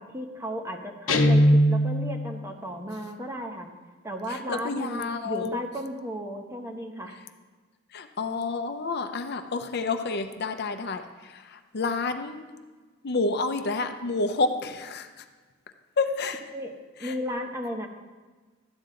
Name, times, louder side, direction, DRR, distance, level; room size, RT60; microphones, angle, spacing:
voice 1, 0.0-3.7 4.0-7.2 16.5-16.7 17.0-17.9, equal, 15° right, 3 dB, 0.9 m, -34 dB
Guitar, 1.1-2.2, equal, 85° left, 0.9 m, -19 dB
voice 2, 4.3-5.6 7.9-12.5 13.0-15.2 16.0-16.4 17.0-17.1, left 3 dB, 55° left, 7 dB, 0.6 m, -29 dB
13.0 x 9.5 x 3.8 m, 1.4 s
head